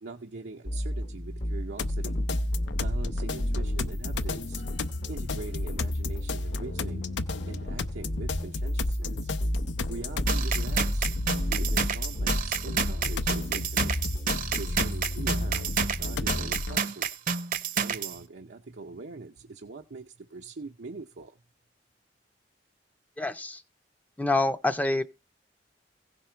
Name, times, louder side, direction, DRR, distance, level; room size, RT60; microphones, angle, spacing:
voice 1, 0.0-2.2 2.8-4.7 5.1-9.3 9.9-14.0 14.5-17.1 17.7-21.4, right 3 dB, 90° right, 0.7 m, -42 dB
sound 1, 0.6-16.6, equal, 40° left, 0.8 m, -33 dB
sound 2, 1.8-16.8, left 2 dB, 85° left, 0.6 m, -33 dB
sound 3, 10.3-18.2, right 7 dB, 50° right, 0.7 m, -30 dB
voice 2, 23.2-23.6 24.2-25.0, left 2 dB, 10° left, 0.5 m, -26 dB
16.0 x 5.4 x 4.5 m
head